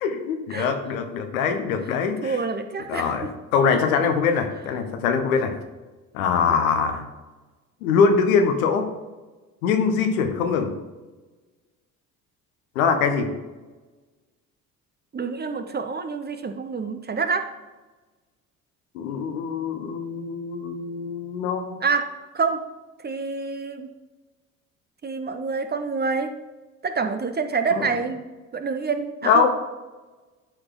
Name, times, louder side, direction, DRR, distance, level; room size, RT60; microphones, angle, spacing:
voice 1, 0.0-2.4 2.9-5.6 6.1-7.0 7.8-8.9 9.6-10.8 12.7-13.4 18.9-21.8 27.7-27.9 29.2-29.5, left 6 dB, 70° left, 6 dB, 1.1 m, -23 dB
voice 2, 2.2-3.3 15.1-17.5 21.8-22.6 23.0-23.9 25.0-26.3 26.8-28.2 28.5-29.5, right 4 dB, 25° right, 8 dB, 0.8 m, -27 dB
12.0 x 4.9 x 3.8 m, 1.2 s
figure-of-eight pair, 60°, 43 cm